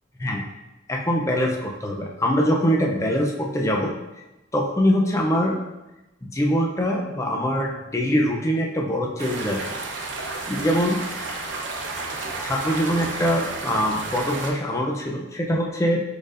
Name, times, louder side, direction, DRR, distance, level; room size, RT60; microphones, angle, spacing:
voice 1, 0.9-3.9 4.5-5.6 6.2-9.6 10.5-11.3 12.4-16.0, equal, 15° left, 0 dB, 0.4 m, -23 dB
sound 1, 9.2-14.5, right 3 dB, 75° right, 0.7 m, -32 dB
4.9 x 4.4 x 2.5 m, 1.0 s
head